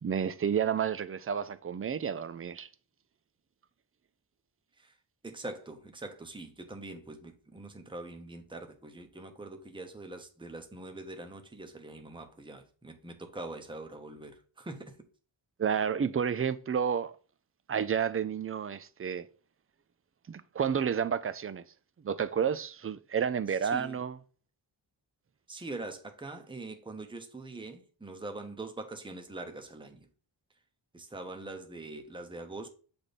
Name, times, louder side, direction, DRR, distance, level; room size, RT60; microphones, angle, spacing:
voice 1, 0.0-2.7 15.6-17.1 17.7-19.3 20.3-21.6 22.0-24.2, right 7 dB, 30° right, 0.4 m, -30 dB
voice 2, 5.2-14.9 23.6-24.0 25.5-30.1 30.9-32.7, right 2 dB, 10° right, 0.8 m, -43 dB
7.4 x 3.4 x 4.0 m
wide cardioid pair, 95°, 47 cm